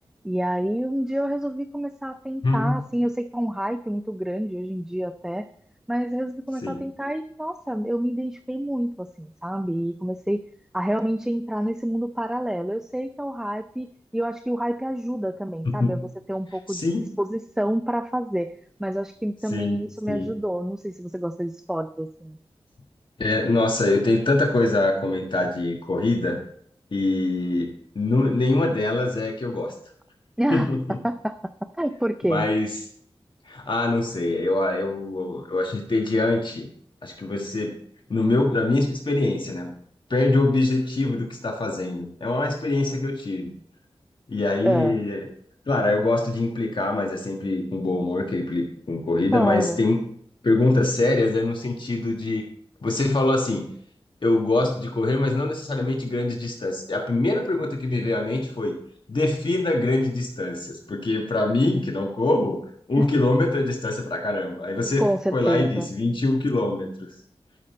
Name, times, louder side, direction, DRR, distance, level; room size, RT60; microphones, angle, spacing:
voice 1, 0.2-5.5 5.9-10.4 10.7-13.9 14.1-18.5 18.8-22.4 30.4-30.8 31.0-32.5 44.6-45.0 49.3-49.8 63.0-63.1 65.0-65.9, right 1 dB, 5° right, 10 dB, 0.5 m, -27 dB
voice 2, 2.4-2.8 6.6-6.8 15.6-15.9 16.7-17.0 19.5-19.8 20.1-20.3 23.2-26.4 26.9-29.7 30.5-31.0 32.3-32.7 33.5-36.7 37.0-37.8 38.1-39.7 40.1-43.5 44.3-45.3 45.7-50.0 50.4-52.4 52.8-53.7 54.2-58.8 59.1-62.6 62.9-67.1, left 2 dB, 55° left, 1 dB, 1.4 m, -24 dB
12.5 x 6.6 x 4.3 m, 0.64 s
wide cardioid pair, 80°, 10 cm